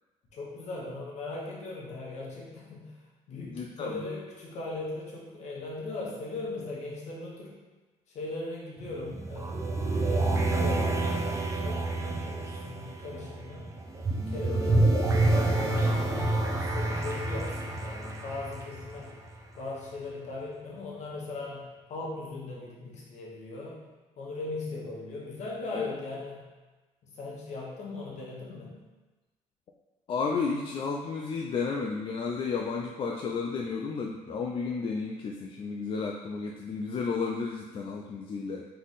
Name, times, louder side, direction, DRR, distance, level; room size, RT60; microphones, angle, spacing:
voice 1, 0.3-2.9 3.3-7.5 8.1-13.7 14.1-16.2 16.6-19.2 19.5-23.8 24.2-26.5 27.0-28.8, left 2 dB, 60° left, -4 dB, 1.3 m, -39 dB
voice 2, 3.5-4.0 14.5-14.6 25.7-25.9 30.1-38.6, left 5 dB, 40° left, 0 dB, 0.4 m, -32 dB
sound 1, 8.8-19.6, right 2 dB, 25° right, 0.6 m, -28 dB
3.7 x 3.2 x 4.0 m, 1.2 s
cardioid pair, 115°, 13 cm